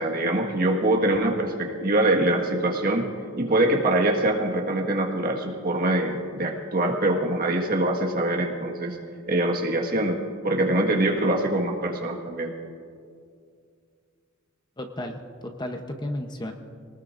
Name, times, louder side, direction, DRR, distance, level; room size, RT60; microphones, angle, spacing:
voice 1, 0.0-3.1 3.4-9.0 9.3-10.2 10.4-12.5, right 1 dB, 45° right, 1 dB, 1.7 m, -24 dB
voice 2, 14.8-16.5, left 1 dB, 20° left, 4 dB, 0.9 m, -33 dB
26.5 x 19.0 x 2.6 m, 2.3 s
head